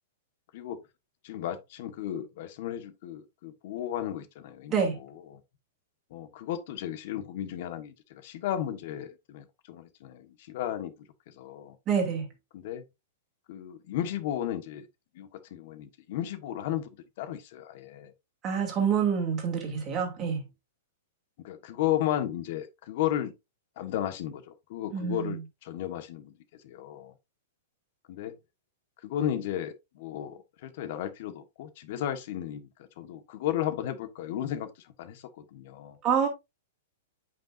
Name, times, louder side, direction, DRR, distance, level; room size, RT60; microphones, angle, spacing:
voice 1, 1.2-5.4 6.1-11.8 12.5-12.8 13.5-14.9 15.1-18.1 21.4-23.3 23.8-27.1 28.1-28.3 29.0-36.0, left 11 dB, 50° left, 1.2 m, -34 dB
voice 2, 11.9-12.2 18.4-20.4 24.9-25.4 36.0-36.3, right 7 dB, 20° right, 2.5 m, -27 dB
8.5 x 5.4 x 2.5 m
supercardioid pair, 165°, 0 cm